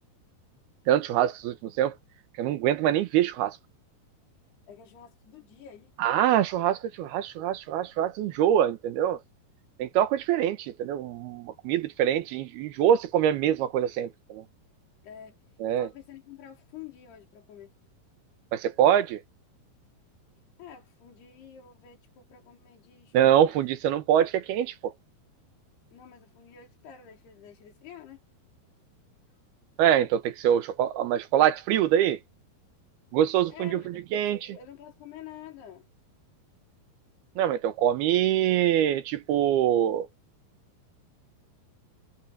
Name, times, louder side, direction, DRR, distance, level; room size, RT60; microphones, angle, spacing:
voice 1, 0.9-1.9 2.4-3.6 6.0-9.2 9.8-14.4 15.6-15.9 18.5-19.2 23.1-24.9 29.8-32.2 33.1-34.4 37.4-40.1, right 10 dB, 75° right, 3.1 m, -24 dB
voice 2, 4.7-5.9 15.0-15.4 15.7-17.7 20.6-23.5 25.9-28.2 33.5-35.9, left 9 dB, 80° left, 5.9 m, -48 dB
omnidirectional pair, 4.6 m